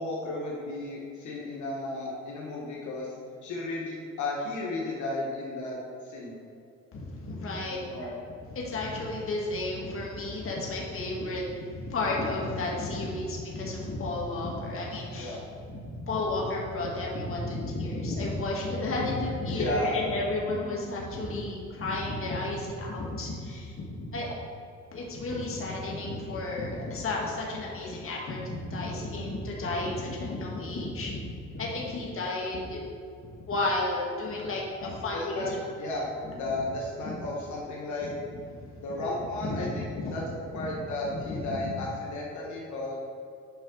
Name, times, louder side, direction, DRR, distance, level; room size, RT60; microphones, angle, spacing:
voice 1, 0.0-3.1 3.4-5.8 6.1-6.4 7.7-8.2 15.2-15.4 19.5-19.9 35.1-38.1 38.8-40.2 40.5-42.9, left 2 dB, 75° left, -3 dB, 1.5 m, -34 dB
voice 2, 6.9-8.1 8.5-24.3 24.9-31.2 31.5-32.8 33.5-35.6 36.5-36.6 37.0-37.1 38.0-38.8 39.4-40.2 40.5-40.7 41.1-41.8, left 2 dB, 45° left, -3 dB, 1.8 m, -32 dB
8.8 x 5.5 x 3.9 m, 2.5 s
cardioid pair, 90°, 30 cm